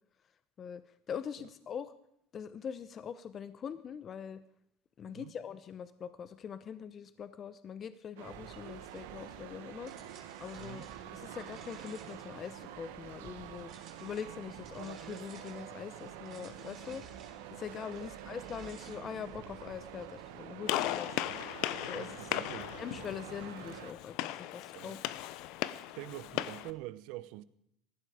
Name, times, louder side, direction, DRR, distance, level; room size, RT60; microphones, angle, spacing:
voice 1, 0.6-1.9 2.3-4.4 5.0-10.1 10.4-17.0 17.5-21.2 21.8-22.3 22.8-25.0, left 7 dB, 35° left, 0.9 m, -43 dB
sound 1, 8.2-23.9, right 11 dB, 85° right, 1.6 m, -47 dB
sound 2, 8.3-20.5, right 6 dB, 45° right, 4.9 m, -55 dB
voice 2, 10.6-10.9 18.0-18.1 21.3-21.4 21.9-22.8 24.7-25.0 25.7-27.4, right 16 dB, 70° right, 0.9 m, -45 dB
Gunshot gunfire, 20.7-26.7, left 14 dB, 65° left, 0.9 m, -37 dB
18.5 x 14.5 x 5.0 m
supercardioid pair, 115°, 0 cm